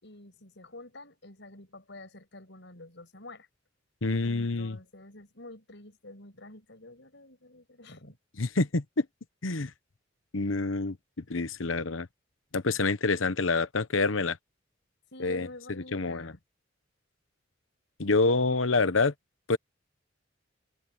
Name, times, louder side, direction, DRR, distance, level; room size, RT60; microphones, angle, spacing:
voice 1, 0.0-3.5 4.2-8.2 15.1-16.4, left 2 dB, 65° left, 7.0 m, -48 dB
voice 2, 4.0-4.8 8.4-9.0 9.4-9.7 10.3-11.0 11.3-12.1 12.5-14.4 15.2-15.5 15.9-16.3 18.0-19.1 19.5-19.6, left 3 dB, 90° left, 1.1 m, -27 dB
head